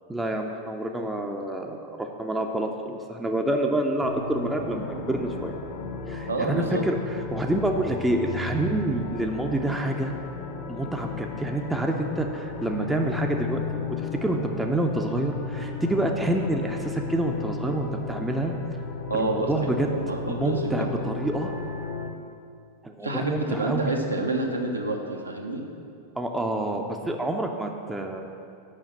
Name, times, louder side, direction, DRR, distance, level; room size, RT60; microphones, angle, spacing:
voice 1, 0.1-5.5 6.1-7.0 7.3-10.1 10.7-13.6 13.9-18.5 19.1-19.9 20.3-21.5 22.8-23.9 26.2-28.2, right 1 dB, 5° right, 2 dB, 0.6 m, -27 dB
sound 1, 4.0-22.1, left 4 dB, 40° left, 0.8 m, -35 dB
voice 2, 6.3-6.8 19.1-19.5 19.8-20.9 23.0-25.6, right 2 dB, 80° right, 1 dB, 0.9 m, -28 dB
6.6 x 5.7 x 7.2 m, 2.6 s
figure-of-eight pair, 90°, 0 cm